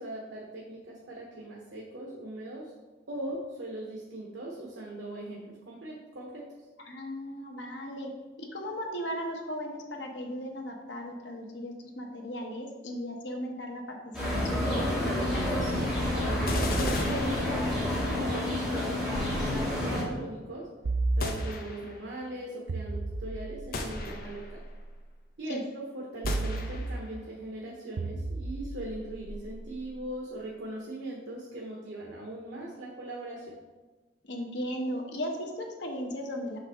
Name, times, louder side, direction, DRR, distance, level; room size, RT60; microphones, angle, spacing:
voice 1, 0.0-2.7 3.1-6.4 16.2-20.7 21.1-24.6 25.4-25.6 25.9-33.5, right 1 dB, 90° right, -3 dB, 1.1 m, -40 dB
voice 2, 6.9-8.1 8.4-15.4 25.5-25.6 34.2-36.6, equal, 85° left, 2 dB, 1.0 m, -37 dB
sound 1, 14.1-20.0, left 1 dB, 5° right, 2.2 m, -29 dB
sound 2, 16.5-18.1 21.2-22.1 23.7-24.7 26.3-27.1, left 2 dB, 55° left, 0.8 m, -36 dB
sound 3, 19.1-20.2 20.8-22.0 22.7-24.9 26.2-27.3 28.0-30.1, right 2 dB, 70° right, 0.5 m, -36 dB
6.1 x 5.4 x 3.5 m, 1.2 s
head